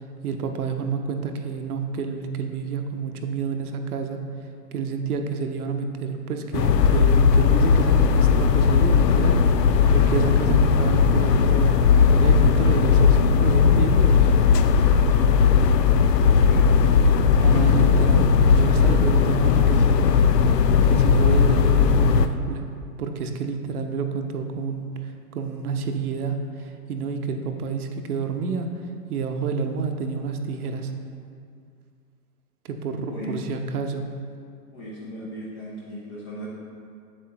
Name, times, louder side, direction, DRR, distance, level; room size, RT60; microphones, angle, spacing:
voice 1, 0.2-4.2 4.7-14.3 17.4-20.1 20.9-22.7 23.0-25.0 25.3-28.7 29.1-30.9 32.6-34.1, right 5 dB, 65° right, 5 dB, 0.9 m, -29 dB
sound 1, 6.5-22.3, left 6 dB, 90° left, 0.6 m, -17 dB
voice 2, 34.7-36.5, equal, 15° left, -5 dB, 0.5 m, -37 dB
7.8 x 7.5 x 2.9 m, 2.3 s
hypercardioid pair, 135°, 48 cm